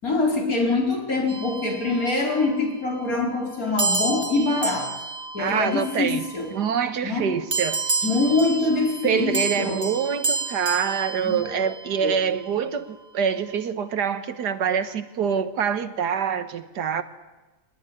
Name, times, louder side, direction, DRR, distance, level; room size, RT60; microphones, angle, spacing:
voice 1, 0.0-5.0 5.3-6.6 7.0-7.4 8.0-9.9 11.2-11.7 12.0-12.2, left 3 dB, 55° left, 5.1 m, -24 dB
sound 1, 1.3-2.5 3.8-6.5 7.5-12.0, right 3 dB, 55° right, 2.5 m, -30 dB
voice 2, 5.4-6.2 6.5-7.8 9.0-17.0, right 7 dB, 75° right, 1.8 m, -25 dB
22.0 x 19.5 x 9.8 m
omnidirectional pair, 1.8 m